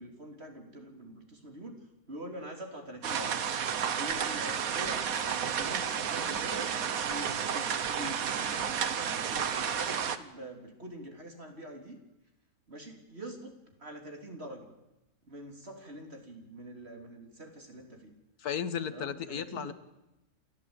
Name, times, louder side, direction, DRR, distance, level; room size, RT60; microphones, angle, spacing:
voice 1, 0.0-3.4 4.0-6.8 7.1-12.0 12.7-13.5 13.8-14.7 15.2-18.1 18.9-19.7, right 1 dB, 45° right, 3 dB, 3.5 m, -45 dB
sound 1, 3.0-10.2, right 7 dB, 70° right, 1.5 m, -31 dB
sound 2, 4.1-10.1, equal, 20° right, 2.7 m, -54 dB
voice 2, 18.4-19.7, left 8 dB, 80° left, 13 dB, 1.6 m, -34 dB
29.0 x 13.5 x 8.8 m, 0.95 s
omnidirectional pair, 1.6 m